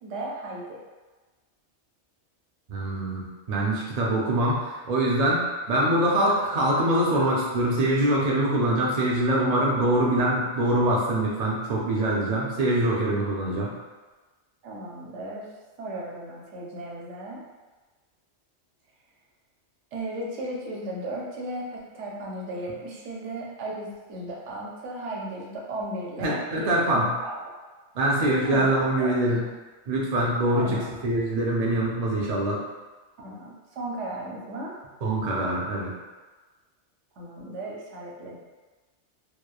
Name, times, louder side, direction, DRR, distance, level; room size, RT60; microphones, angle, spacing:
voice 1, 0.0-0.8 14.6-15.5 15.8-17.4 19.9-27.5 28.4-29.2 30.5-31.0 33.2-34.8 37.2-38.4, right 1 dB, 85° right, -2 dB, 0.9 m, -35 dB
voice 2, 2.7-5.4 5.7-13.7 26.2-27.1 27.9-29.4 29.9-32.6 35.0-35.9, right 1 dB, 50° right, -4 dB, 0.5 m, -24 dB
3.0 x 2.2 x 2.2 m, 1.3 s
omnidirectional pair, 1.2 m